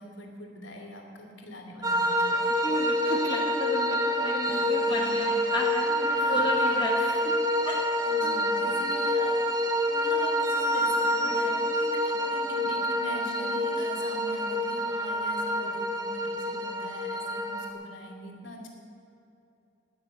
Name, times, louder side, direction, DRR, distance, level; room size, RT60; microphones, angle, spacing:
voice 1, 0.0-2.7 4.5-5.3 6.1-7.2 8.1-9.4 9.9-18.7, left 1 dB, 75° left, 1 dB, 2.8 m, -42 dB
sound 1, 1.8-17.7, equal, 20° right, 1.4 m, -27 dB
voice 2, 2.6-7.3 7.6-7.9 8.2-8.4, left 1 dB, 25° left, -1 dB, 1.5 m, -33 dB
17.5 x 6.8 x 9.7 m, 2.8 s
head